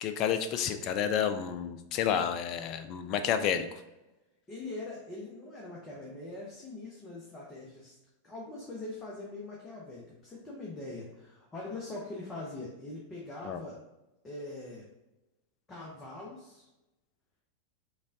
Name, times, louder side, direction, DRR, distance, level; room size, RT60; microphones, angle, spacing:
voice 1, 0.0-3.7 13.5-13.6, left 8 dB, 40° left, 9 dB, 0.3 m, -30 dB
voice 2, 4.5-8.0 8.2-13.8 14.2-14.9 15.7-16.7, left 2 dB, 20° left, -4 dB, 0.8 m, -42 dB
5.1 x 2.3 x 2.6 m, 0.96 s
figure-of-eight pair, 90°, 0 cm